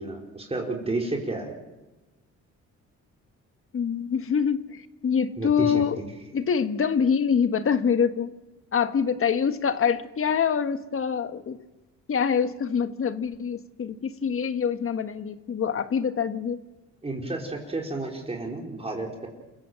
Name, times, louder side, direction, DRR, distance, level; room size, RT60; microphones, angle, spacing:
voice 1, 0.0-1.6 5.4-5.8 17.0-19.3, right 2 dB, 20° right, 0 dB, 4.3 m, -31 dB
voice 2, 3.7-6.0 6.3-8.3 8.7-11.6 12.1-16.6, left 7 dB, 45° left, 10 dB, 1.6 m, -25 dB
29.0 x 15.0 x 7.8 m, 1.1 s
cardioid pair, 90°, 30 cm